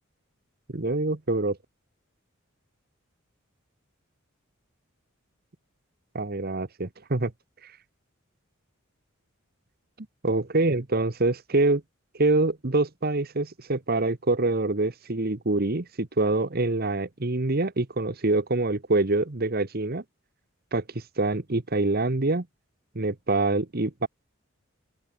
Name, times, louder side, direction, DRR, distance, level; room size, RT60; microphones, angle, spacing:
voice 1, 0.7-1.6 6.1-7.3 7.6-7.7 10.2-11.8 12.1-20.0 20.7-22.4 22.9-24.1, right 2 dB, 45° right, 1.2 m, -25 dB
open air
head